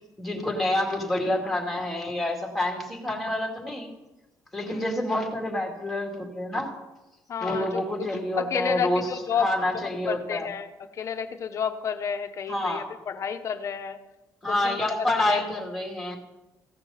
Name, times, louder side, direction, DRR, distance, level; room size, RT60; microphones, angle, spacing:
voice 1, 0.2-3.9 4.5-6.7 7.4-9.1 9.4-10.5 12.5-12.9 14.4-16.2, left 1 dB, ahead, 1 dB, 2.2 m, -28 dB
voice 2, 7.3-8.1 8.3-9.5 10.1-14.0 14.5-15.4, left 7 dB, 45° left, 8 dB, 0.8 m, -31 dB
15.5 x 6.6 x 5.7 m, 1.0 s
cardioid pair, 150°, 7 cm